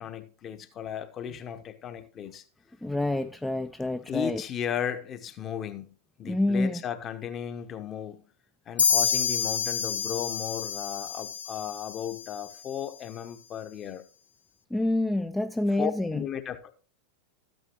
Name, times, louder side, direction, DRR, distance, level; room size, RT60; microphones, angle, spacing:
voice 1, 0.0-2.4 4.0-8.3 8.7-14.0 15.8-16.7, left 9 dB, 30° left, 1.0 m, -35 dB
voice 2, 2.8-4.4 6.2-6.8 14.7-16.2, left 2 dB, 5° left, 0.4 m, -27 dB
sound 1, 8.8-12.4, left 6 dB, 70° left, 0.5 m, -28 dB
13.0 x 9.2 x 3.0 m
figure-of-eight pair, 90°, 0 cm